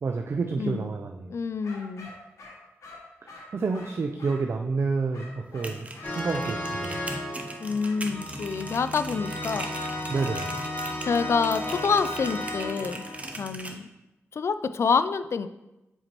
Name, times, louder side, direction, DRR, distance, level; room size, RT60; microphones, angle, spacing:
voice 1, 0.0-1.3 3.2-7.0 10.1-10.6, right 4 dB, 55° right, 4 dB, 0.4 m, -29 dB
voice 2, 0.6-0.9 1.3-2.1 7.6-9.7 11.0-13.0 13.4-13.9 14.3-15.5, left 5 dB, 60° left, 12 dB, 0.3 m, -27 dB
sound 1, 1.6-4.5 5.1-7.1 7.8-8.0 12.1-12.8, left 2 dB, 85° left, 1.3 m, -47 dB
sound 2, 5.4-13.8, right 2 dB, 25° right, 0.7 m, -40 dB
sound 3, 6.0-13.3, left 1 dB, 30° left, 1.3 m, -34 dB
7.6 x 4.3 x 3.0 m, 0.98 s
cardioid pair, 70°, 5 cm